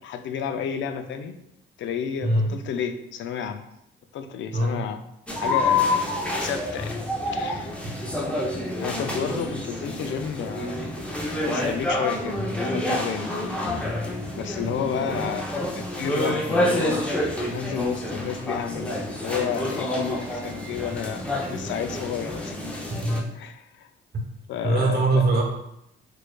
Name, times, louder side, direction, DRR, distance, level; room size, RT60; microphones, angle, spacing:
voice 1, 0.0-1.3 1.8-3.6 4.1-5.0 5.3-7.7 8.8-10.8 11.4-12.4 12.7-13.8 14.4-17.0 17.5-22.5 23.3-23.9 24.5-25.3, left 7 dB, 65° left, 8 dB, 0.4 m, -31 dB
sound 1, 5.3-23.2, left 1 dB, 5° left, 0.5 m, -28 dB
voice 2, 24.6-25.4, right 2 dB, 50° right, 0 dB, 1.0 m, -21 dB
4.5 x 2.5 x 2.3 m, 0.80 s
cardioid pair, 95°, 20 cm